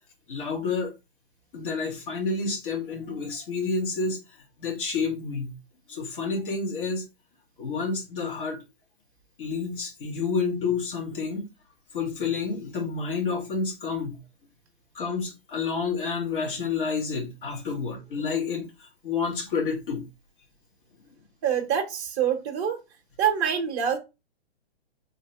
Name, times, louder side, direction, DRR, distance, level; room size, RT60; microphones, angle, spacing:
voice 1, 0.3-0.9 1.5-4.2 4.6-5.5 5.9-7.0 7.6-8.6 9.4-11.5 11.9-14.2 14.9-20.1, left 4 dB, 55° left, 1.8 m, -29 dB
voice 2, 21.4-22.8 23.2-24.0, right 8 dB, 25° right, 0.8 m, -25 dB
3.5 x 3.0 x 3.3 m
hypercardioid pair, 140°, 32 cm